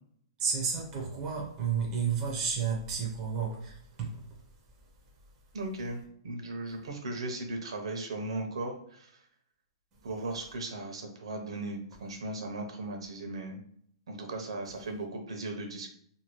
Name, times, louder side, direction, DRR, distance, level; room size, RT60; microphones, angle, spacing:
voice 1, 0.4-4.2, right 6 dB, 15° right, 0.7 m, -32 dB
voice 2, 5.5-9.1 10.0-13.6 14.1-15.9, right 2 dB, 80° right, 0.8 m, -37 dB
2.7 x 2.6 x 3.0 m
hypercardioid pair, 175°, 3 cm